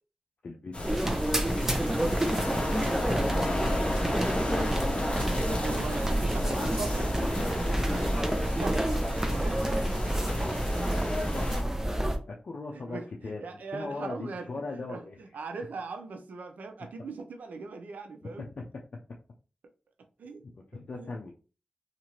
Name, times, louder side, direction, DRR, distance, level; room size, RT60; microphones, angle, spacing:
voice 1, 0.4-1.4 1.7-2.4 4.5-4.7 6.4-6.7 10.3-11.6 12.0-15.2 18.4-18.7 18.9-19.0 20.5-21.3, left 3 dB, 65° left, 0.5 m, -40 dB
sound 1, 0.7-11.6, left 1 dB, 45° left, 0.9 m, -34 dB
sound 2, 0.8-12.2, right 1 dB, 15° right, 0.7 m, -29 dB
voice 2, 5.3-7.1 7.9-8.1 8.5-9.9 12.7-18.4 20.2-20.4 21.0-21.3, right 4 dB, 90° right, 0.5 m, -41 dB
2.9 x 2.5 x 2.9 m
cardioid pair, 45°, 3 cm